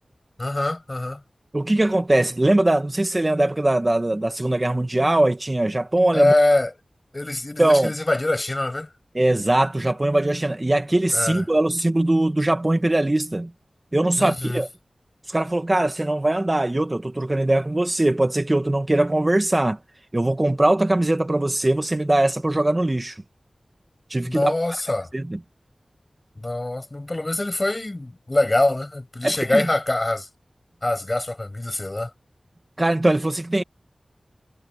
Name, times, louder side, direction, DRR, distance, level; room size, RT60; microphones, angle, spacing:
voice 1, 0.4-1.2 6.1-6.7 7.1-8.9 11.1-11.4 14.2-14.6 24.3-25.1 26.4-30.3 30.8-32.1, left 2 dB, 30° left, 7.0 m, -24 dB
voice 2, 1.5-6.3 7.6-7.9 9.2-13.5 13.9-14.7 15.3-19.8 20.1-23.2 24.1-24.5 25.1-25.4 29.2-29.6 32.8-33.6, right 1 dB, 30° right, 2.0 m, -21 dB
wide cardioid pair, 65°, 0 cm